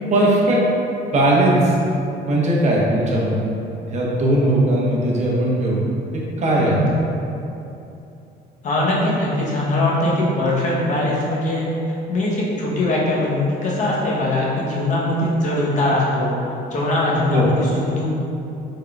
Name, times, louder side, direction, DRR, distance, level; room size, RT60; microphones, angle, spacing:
voice 1, 0.1-0.6 1.1-1.7 2.2-3.3 3.9-5.8 6.1-6.7 17.3-17.5, right 1 dB, 45° right, -4 dB, 0.8 m, -18 dB
voice 2, 6.5-6.8 8.6-11.7 12.1-16.3 16.7-18.1, left 1 dB, 45° left, -5 dB, 0.9 m, -21 dB
3.6 x 3.6 x 2.3 m, 2.8 s
cardioid pair, 110°, 17 cm